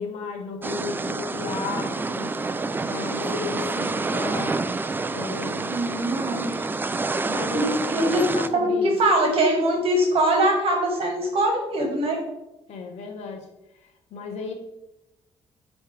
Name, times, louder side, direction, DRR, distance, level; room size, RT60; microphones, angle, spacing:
voice 1, 0.0-4.6 5.1-5.7 7.3-9.0 12.7-13.5 13.8-14.5, left 5 dB, 85° left, 3 dB, 1.1 m, -34 dB
sound 1, 0.6-8.5, right 3 dB, 20° right, 0.4 m, -28 dB
voice 2, 5.7-6.6 7.3-7.6 7.9-12.2, right 1 dB, 60° right, 1 dB, 1.5 m, -22 dB
9.4 x 3.2 x 3.4 m, 0.93 s
cardioid pair, 95°, 11 cm